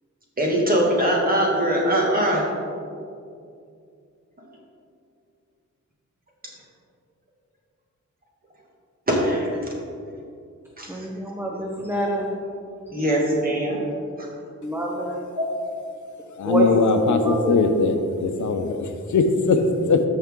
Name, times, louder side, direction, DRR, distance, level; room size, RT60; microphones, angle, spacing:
voice 1, 0.4-2.5 6.4-6.5 9.1-9.7 10.8-11.1 12.9-13.8 15.4-15.5, right 1 dB, 30° right, -3 dB, 2.0 m, -22 dB
voice 2, 10.9-12.3 14.6-15.3 16.4-17.6, right 1 dB, 5° right, -2 dB, 0.8 m, -25 dB
voice 3, 16.3-20.0, left 4 dB, 80° left, 6 dB, 0.8 m, -21 dB
14.0 x 5.7 x 3.7 m, 2.4 s
wide cardioid pair, 140°, 29 cm